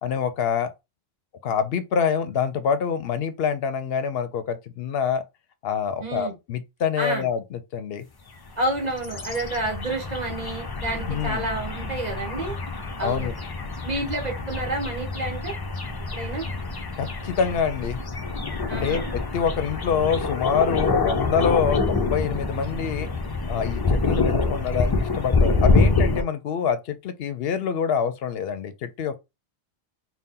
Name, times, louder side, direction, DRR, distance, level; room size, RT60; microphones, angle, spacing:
voice 1, 0.0-0.7 1.4-5.2 5.6-8.1 11.1-11.5 13.0-13.3 17.0-18.0 18.7-23.1 23.5-29.2, left 7 dB, 70° left, 0.8 m, -26 dB
voice 2, 6.0-6.3 7.0-7.3 8.6-12.5 13.0-13.3 13.8-15.5 16.1-16.4 18.7-19.0, right 2 dB, 40° right, 1.2 m, -29 dB
sound 1, 8.5-26.2, left 3 dB, 30° left, 0.4 m, -26 dB
4.1 x 2.2 x 3.7 m
omnidirectional pair, 1.1 m